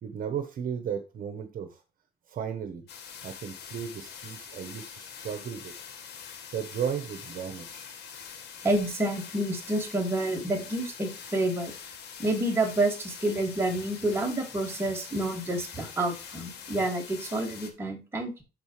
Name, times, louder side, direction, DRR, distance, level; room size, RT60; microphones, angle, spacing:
voice 1, 0.0-1.8 2.3-2.9 3.2-5.7 6.5-8.0, right 8 dB, 55° right, 7 dB, 1.1 m, -35 dB
sound 1, 2.9-17.7, left 7 dB, 75° left, 1.7 m, -44 dB
voice 2, 8.6-11.7 12.2-18.4, right 1 dB, 15° right, 0 dB, 2.3 m, -29 dB
11.5 x 4.3 x 3.2 m, 0.31 s
cardioid pair, 130°, 17 cm